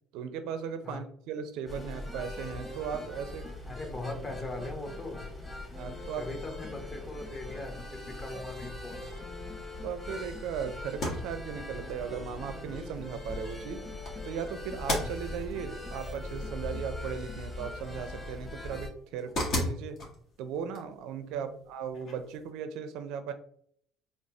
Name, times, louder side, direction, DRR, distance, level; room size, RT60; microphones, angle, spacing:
voice 1, 0.1-3.8 5.7-6.3 8.3-8.4 9.8-13.8 14.2-20.0 20.4-23.3, right 7 dB, 70° right, 10 dB, 0.4 m, -37 dB
sound 1, 1.7-18.9, left 2 dB, 15° left, 1.7 m, -41 dB
voice 2, 3.7-5.2 6.2-9.1 21.3-21.5, left 2 dB, 30° left, 2 dB, 1.4 m, -40 dB
sound 2, 10.8-22.5, left 1 dB, 55° left, 1.7 m, -39 dB
4.3 x 3.0 x 3.2 m, 0.65 s
hypercardioid pair, 60°, 0 cm